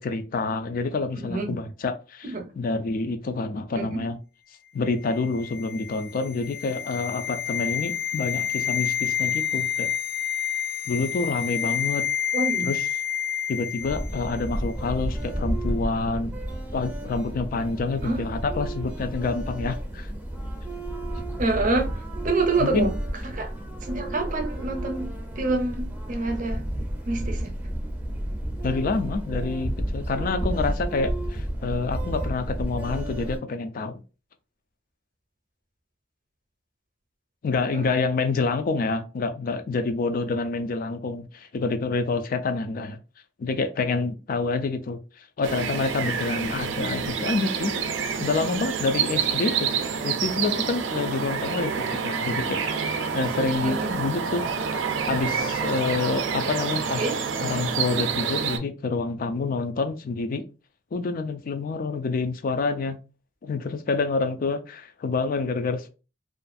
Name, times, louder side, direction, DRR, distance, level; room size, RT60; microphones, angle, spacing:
voice 1, 0.0-2.3 2.6-4.2 4.7-9.9 10.9-12.0 12.6-12.8 13.5-16.3 16.7-20.1 22.6-22.9 28.6-34.0 37.4-43.0 43.4-47.7 48.2-49.7 50.0-52.6 52.9-54.5 55.1-57.0 57.4-60.4 60.9-63.0 63.4-65.9, left 3 dB, 50° left, 0.4 m, -27 dB
voice 2, 1.1-1.6 2.3-2.4 3.7-4.0 12.3-12.7 18.0-18.3 21.4-22.9 23.2-23.5 23.8-26.6 27.1-27.5 37.7-37.9 53.6-53.9 56.6-57.2, right 3 dB, 45° right, 0.6 m, -27 dB
sound 1, 5.0-14.3 14.5-14.7, left 9 dB, 85° left, 0.7 m, -29 dB
sound 2, 13.8-33.4, right 1 dB, 10° right, 0.5 m, -31 dB
sound 3, 45.4-58.6, right 6 dB, 85° right, 0.4 m, -28 dB
2.5 x 2.3 x 2.5 m
head